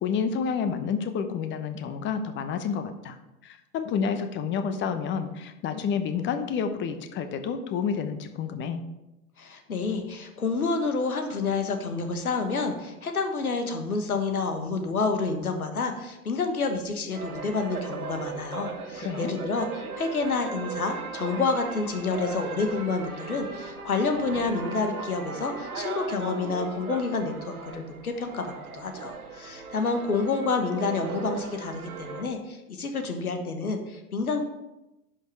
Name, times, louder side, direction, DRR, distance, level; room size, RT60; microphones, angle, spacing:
voice 1, 0.0-3.2 3.4-8.8 19.0-19.3, left 6 dB, 25° left, 9 dB, 0.9 m, -29 dB
voice 2, 9.4-34.4, left 4 dB, 75° left, 6 dB, 1.5 m, -29 dB
sound 1, 17.1-32.2, right 4 dB, 75° right, 1.5 m, -38 dB
11.0 x 6.3 x 4.8 m, 0.94 s
figure-of-eight pair, 90°, 44 cm